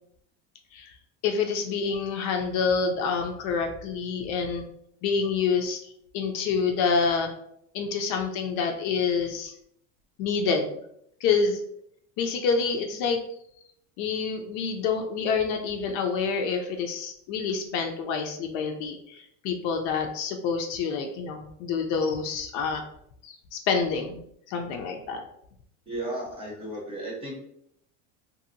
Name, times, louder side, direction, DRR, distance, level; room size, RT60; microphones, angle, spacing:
voice 1, 1.2-4.6 5.0-5.8 6.1-7.3 7.7-9.5 10.2-10.7 11.2-11.6 12.2-13.2 14.0-22.8 23.2-24.2 24.5-25.2, left 5 dB, 55° left, 4 dB, 0.5 m, -27 dB
voice 2, 25.9-27.3, right 1 dB, 15° right, -2 dB, 0.7 m, -34 dB
2.7 x 2.6 x 2.6 m, 0.72 s
cardioid pair, 145°, 36 cm